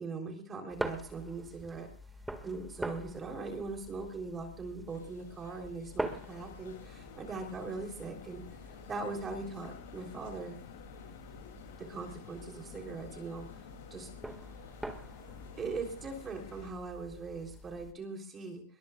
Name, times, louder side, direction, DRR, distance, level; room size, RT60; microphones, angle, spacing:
voice 1, 0.0-1.9 2.4-8.4 8.9-10.6 11.8-13.5 13.9-14.1 15.5-18.6, right 3 dB, 20° right, 2 dB, 3.5 m, -40 dB
sound 1, 0.7-17.9, right 1 dB, 5° right, 1.9 m, -45 dB
sound 2, 4.9-16.4, left 5 dB, 90° left, 7.8 m, -55 dB
sound 3, 6.0-16.7, left 8 dB, 65° left, 2.8 m, -53 dB
22.0 x 22.0 x 2.4 m, 0.41 s
hypercardioid pair, 130°, 0 cm